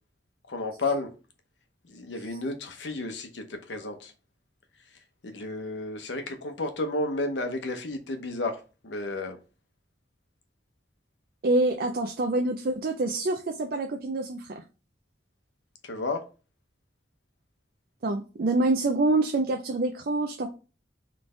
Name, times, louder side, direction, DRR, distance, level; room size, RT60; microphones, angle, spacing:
voice 1, 0.5-1.1 1.9-4.1 5.2-9.4 15.8-16.2, left 2 dB, 85° left, 0.8 m, -32 dB
voice 2, 11.4-14.6 18.0-20.5, right 2 dB, 55° right, 0.4 m, -26 dB
4.0 x 3.3 x 3.7 m
head